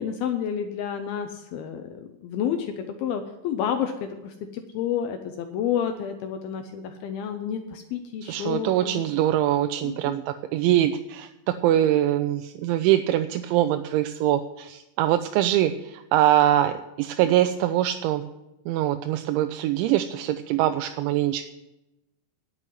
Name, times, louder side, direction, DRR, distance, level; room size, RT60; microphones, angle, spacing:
voice 1, 0.0-9.1 9.8-10.2, left 8 dB, 85° left, 6 dB, 2.2 m, -30 dB
voice 2, 8.2-11.3 11.6-18.2 18.7-21.4, right 12 dB, 85° right, 8 dB, 2.9 m, -23 dB
10.5 x 7.9 x 9.1 m, 0.94 s
omnidirectional pair, 5.4 m